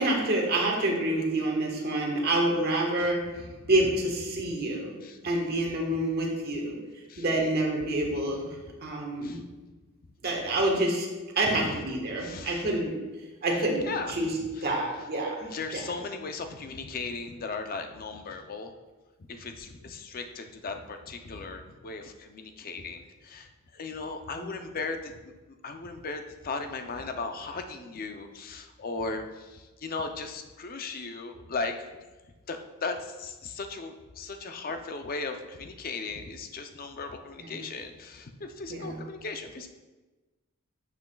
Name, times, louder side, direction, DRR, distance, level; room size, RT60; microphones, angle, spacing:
voice 1, 0.0-3.2 3.7-4.9 5.2-6.7 7.2-8.5 8.8-9.4 10.2-11.1 11.4-12.9 13.4-13.8 14.2-14.3 14.6-15.5 15.7-15.8 37.4-37.6 38.7-39.0, right 1 dB, 50° right, -1 dB, 1.3 m, -27 dB
voice 2, 11.4-11.8 12.1-12.7 13.8-14.3 14.6-14.7 15.0-15.1 15.5-18.7 19.2-25.3 25.6-31.9 32.5-39.7, left 3 dB, 45° left, 6 dB, 0.5 m, -37 dB
9.2 x 5.7 x 2.3 m, 1.2 s
head